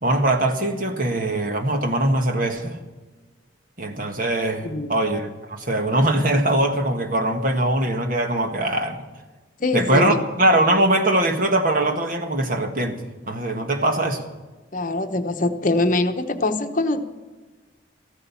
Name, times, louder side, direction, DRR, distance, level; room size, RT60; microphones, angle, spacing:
voice 1, 0.0-2.8 3.8-9.0 9.7-13.0 13.3-14.3, right 1 dB, 45° right, 6 dB, 1.6 m, -21 dB
voice 2, 4.6-4.9 9.6-10.2 14.7-17.0, left 2 dB, 45° left, 7 dB, 1.0 m, -23 dB
14.5 x 13.5 x 7.1 m, 1.3 s
head